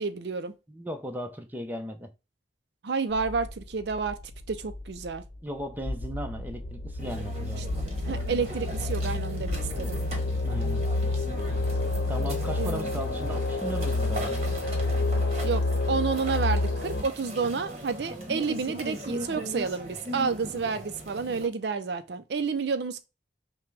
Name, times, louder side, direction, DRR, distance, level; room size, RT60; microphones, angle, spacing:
voice 1, 0.0-0.5 2.8-4.2 4.5-5.2 7.6-7.7 8.0-10.0 12.6-12.9 15.4-23.0, right 5 dB, 70° right, 0.5 m, -30 dB
voice 2, 0.7-2.1 5.4-7.6 10.4-10.8 12.1-14.4, equal, 10° right, 0.7 m, -36 dB
sound 1, 3.1-17.0, left 2 dB, 80° left, 0.8 m, -29 dB
sound 2, 7.0-21.5, right 1 dB, 35° right, 1.1 m, -39 dB
5.8 x 2.2 x 3.2 m
head